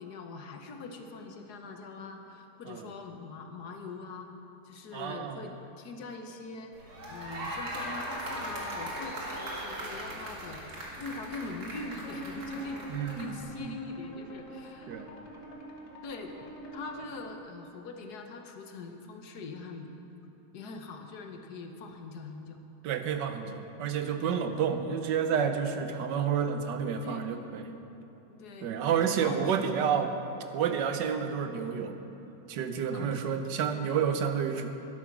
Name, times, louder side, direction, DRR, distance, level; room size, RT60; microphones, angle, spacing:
voice 1, 0.0-4.3 4.6-6.7 7.1-12.9 13.2-15.1 16.0-16.3 16.7-19.9 20.5-22.6 27.0-27.2 28.3-29.4 29.9-30.0 32.9-33.2, left 3 dB, 65° left, 4 dB, 1.5 m, -42 dB
voice 2, 4.9-5.5 12.9-13.8 14.9-15.1 22.8-27.7 28.6-30.2 30.5-32.0 32.5-34.7, right 7 dB, 85° right, 7 dB, 1.4 m, -30 dB
sound 1, 6.7-13.4, right 1 dB, 60° right, 2.6 m, -39 dB
sound 2, 12.0-17.2, equal, 50° left, 2.0 m, -44 dB
12.5 x 10.5 x 6.0 m, 2.9 s
omnidirectional pair, 1.9 m